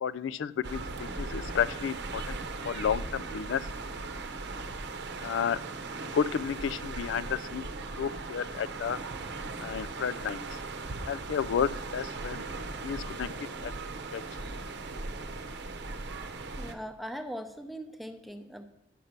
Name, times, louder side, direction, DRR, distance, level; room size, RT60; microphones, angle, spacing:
voice 1, 0.0-2.4 2.6-3.7 5.2-5.6 5.9-7.7 8.0-9.0 9.6-10.5 11.1-12.5 12.8-13.3 13.6-13.8 14.1-14.2, left 7 dB, 85° left, 14 dB, 0.3 m, -32 dB
sound 1, 0.6-16.7, right 3 dB, 65° right, 0.8 m, -38 dB
voice 2, 16.6-18.6, equal, ahead, 7 dB, 0.7 m, -40 dB
10.0 x 5.8 x 6.6 m, 0.84 s
head